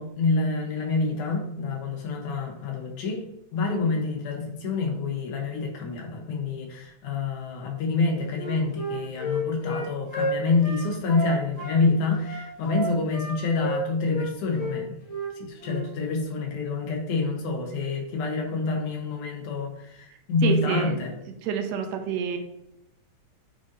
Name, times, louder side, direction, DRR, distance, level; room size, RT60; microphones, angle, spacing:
voice 1, 0.0-3.2 3.5-15.0 15.3-21.1, left 3 dB, 80° left, 1 dB, 2.7 m, -27 dB
Wind instrument woodwind instrument, 8.3-11.8 12.2-14.3 14.5-14.7 15.1-15.3 15.6-15.8, right 1 dB, 60° left, 0.7 m, -31 dB
voice 2, 20.4-21.0 21.4-22.4, right 7 dB, 75° right, 5 dB, 1.8 m, -28 dB
9.1 x 3.9 x 2.7 m, 0.82 s
omnidirectional pair, 3.4 m